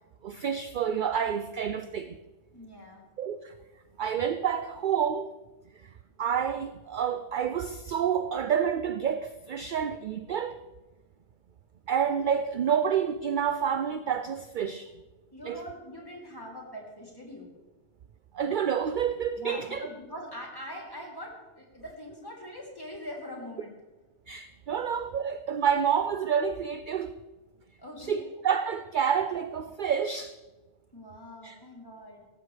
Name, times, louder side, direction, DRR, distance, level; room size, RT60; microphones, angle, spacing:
voice 1, 0.2-2.2 3.2-3.5 4.0-5.3 6.2-10.6 11.9-14.9 15.4-15.6 18.3-19.9 24.3-27.1 28.0-30.3 31.4-31.6, right 8 dB, 55° right, 10 dB, 0.6 m, -28 dB
voice 2, 2.5-3.0 15.3-17.5 19.4-23.7 27.8-28.3 30.9-32.3, equal, 20° left, -2 dB, 3.1 m, -43 dB
17.0 x 14.5 x 3.3 m, 1.2 s
omnidirectional pair, 1.2 m